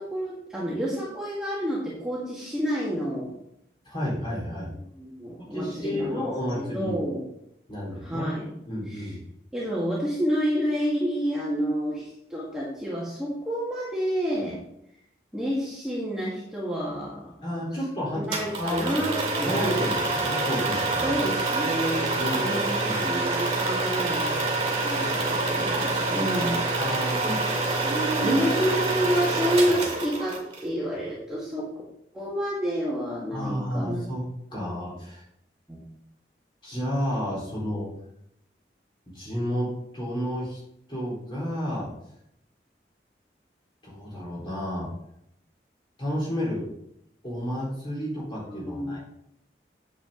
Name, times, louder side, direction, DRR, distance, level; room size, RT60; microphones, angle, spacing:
voice 1, 0.0-3.3 5.0-6.3 6.6-7.2 8.0-8.5 8.9-9.1 9.5-14.6 15.3-17.3 18.1-19.7 21.0-24.4 24.8-26.6 28.2-31.7 32.1-34.0 35.7-35.8 48.5-49.0, equal, 5° right, -7 dB, 1.8 m, -29 dB
voice 2, 3.8-4.7 5.5-6.9 7.7-8.3 8.7-9.2 17.4-18.8 19.4-21.2 22.2-23.0 26.8-27.4 27.8-28.4 33.3-34.2 34.5-35.2 36.6-37.9 39.1-39.7 39.9-40.6 40.9-41.9 43.8-44.9 46.0-46.6 47.2-49.0, equal, 25° left, -5 dB, 3.9 m, -31 dB
sound 1, 18.3-30.6, right 2 dB, 30° right, 2.2 m, -26 dB
8.6 x 7.7 x 3.8 m, 0.76 s
head